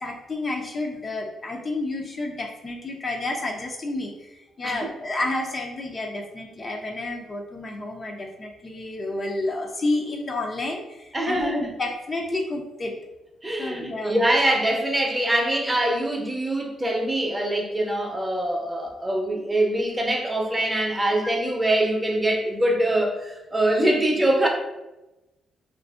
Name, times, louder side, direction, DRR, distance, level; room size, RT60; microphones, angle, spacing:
voice 1, 0.0-12.9 13.6-14.2, left 2 dB, 35° left, 1 dB, 0.4 m, -30 dB
voice 2, 11.1-11.7 13.4-24.5, right 1 dB, 15° right, 0 dB, 0.6 m, -23 dB
2.6 x 2.5 x 2.3 m, 0.98 s
cardioid pair, 75°, 0 cm